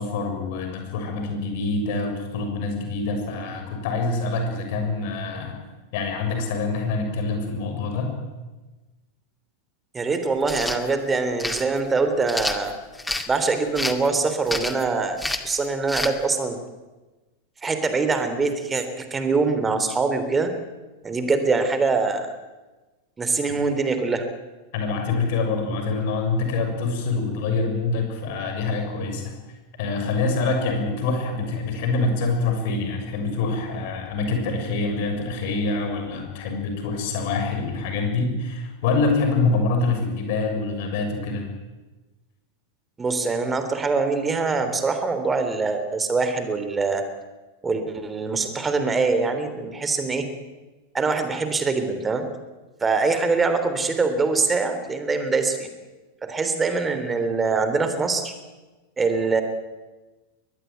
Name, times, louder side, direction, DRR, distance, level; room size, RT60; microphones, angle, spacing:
voice 1, 0.0-5.6 5.9-8.1 24.7-29.3 29.8-41.4, left 3 dB, 50° left, 4 dB, 6.7 m, -25 dB
voice 2, 9.9-12.7 13.3-15.2 15.4-16.6 17.6-20.5 21.0-22.3 23.2-24.2 43.0-47.0 47.6-50.2 50.9-52.2 52.8-55.7 56.2-58.3 59.0-59.4, right 4 dB, 15° right, 9 dB, 3.4 m, -23 dB
sound 1, 10.4-10.8 11.4-11.6 12.3-13.3 13.7-14.1 14.5-14.8 15.2-15.5 15.9-16.1, left 2 dB, 5° left, 2.1 m, -28 dB
23.0 x 19.5 x 9.3 m, 1.2 s
figure-of-eight pair, 90°, 0 cm